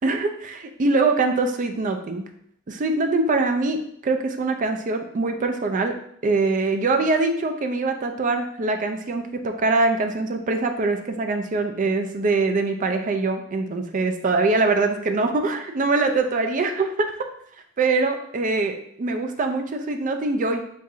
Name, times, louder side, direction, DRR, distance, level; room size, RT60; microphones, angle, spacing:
voice 1, 0.0-2.2 2.7-3.8 4.0-5.9 6.2-17.1 17.8-20.6, right 3 dB, 40° right, 6 dB, 0.4 m, -23 dB
6.3 x 2.5 x 2.7 m, 0.70 s
head